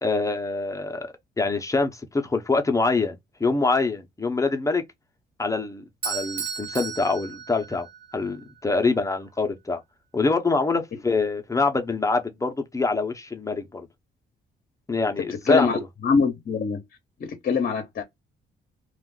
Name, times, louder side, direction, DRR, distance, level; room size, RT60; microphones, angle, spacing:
voice 1, 0.0-4.8 5.4-7.9 8.1-9.8 10.1-13.9 14.9-15.8, left 3 dB, 15° left, 0.8 m, -25 dB
Bell / Doorbell, 6.0-8.1, right 6 dB, 45° right, 1.1 m, -33 dB
voice 2, 15.3-16.8 17.2-18.0, left 5 dB, 50° left, 0.8 m, -24 dB
2.5 x 2.4 x 3.7 m
cardioid pair, 90°, 20 cm